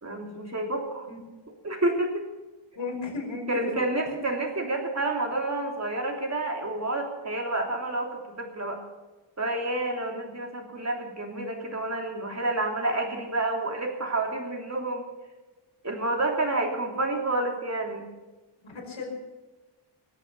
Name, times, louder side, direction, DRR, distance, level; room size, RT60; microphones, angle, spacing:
voice 1, 0.0-1.1 1.6-2.2 3.5-8.8 9.4-15.1 15.8-18.1, right 2 dB, 30° right, 2 dB, 3.3 m, -29 dB
voice 2, 2.8-3.7 18.6-19.1, left 4 dB, 65° left, -1 dB, 5.4 m, -34 dB
22.0 x 8.1 x 6.9 m, 1.2 s
wide cardioid pair, 100°, 50 cm